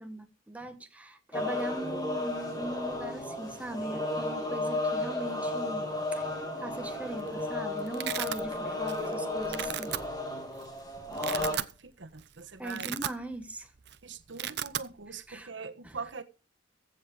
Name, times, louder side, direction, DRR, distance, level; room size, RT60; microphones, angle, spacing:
voice 1, 0.0-10.1 12.6-13.7 15.3-15.5 15.8-16.0, right 1 dB, 10° right, 1.4 m, -40 dB
sound 1, 1.3-11.5, left 2 dB, 20° left, 3.2 m, -33 dB
Domestic sounds home sounds, 6.9-7.3 7.5-8.4 8.9-9.1 9.4-10.0 10.6-10.7 11.1-11.7 12.1-12.3 12.6-13.5 13.8-14.0 14.2-14.9, right 10 dB, 60° right, 0.7 m, -35 dB
voice 2, 11.1-13.0 14.0-16.2, right 4 dB, 80° right, 1.3 m, -43 dB
15.5 x 7.5 x 4.8 m
head